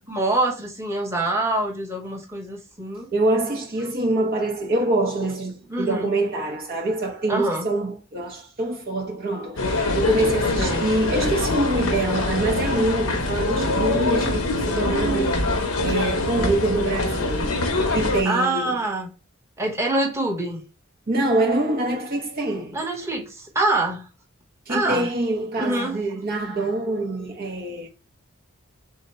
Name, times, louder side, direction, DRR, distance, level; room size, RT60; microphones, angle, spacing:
voice 1, 0.1-3.1 3.8-4.0 5.7-6.1 7.3-7.7 10.6-10.9 18.2-19.1 19.6-20.6 22.7-24.1 24.7-25.1 25.6-26.0, right 2 dB, 15° right, 1.0 m, -25 dB
voice 2, 3.1-15.4 15.8-17.5 17.9-18.8 21.1-22.8 24.7-27.9, right 2 dB, 45° right, 0.8 m, -25 dB
sound 1, 9.6-18.2, left 2 dB, 90° left, 1.0 m, -24 dB
3.8 x 2.8 x 4.3 m
head